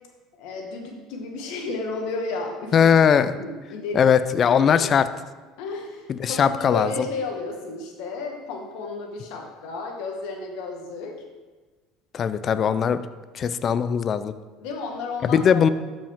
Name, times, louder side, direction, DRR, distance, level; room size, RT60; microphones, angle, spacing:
voice 1, 0.4-2.9 3.3-4.1 4.4-4.9 5.6-11.2 14.6-15.7, left 3 dB, 75° left, 2 dB, 1.6 m, -33 dB
voice 2, 2.7-3.3 3.9-5.1 6.1-6.9 12.1-13.0 13.3-14.3 15.2-15.7, left 7 dB, 40° left, 13 dB, 0.4 m, -19 dB
12.5 x 5.2 x 3.6 m, 1.3 s
supercardioid pair, 115°, 0 cm